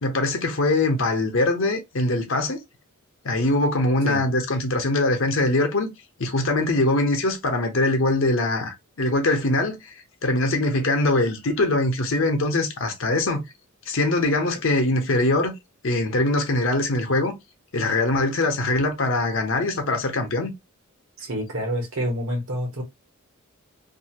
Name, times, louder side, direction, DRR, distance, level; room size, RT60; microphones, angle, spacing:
voice 1, 0.0-2.6 3.2-5.9 6.2-9.8 10.2-13.4 13.9-15.5 15.8-17.3 17.7-20.5, left 2 dB, 65° left, 0.9 m, -22 dB
voice 2, 21.2-22.8, equal, 70° right, 1.2 m, -27 dB
2.7 x 2.4 x 2.8 m
head